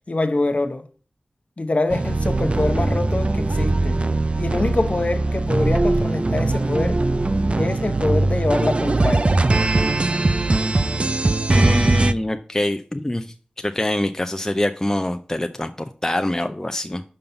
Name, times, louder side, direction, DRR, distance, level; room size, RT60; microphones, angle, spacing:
voice 1, 0.1-0.8 1.6-4.0 4.4-7.0 7.6-9.3, left 2 dB, 50° left, 0.8 m, -24 dB
sound 1, 1.9-12.1, right 2 dB, 40° right, 0.4 m, -20 dB
voice 2, 11.5-13.3 13.6-17.0, left 1 dB, 20° left, 0.5 m, -24 dB
5.4 x 5.4 x 5.6 m
wide cardioid pair, 65°, 3 cm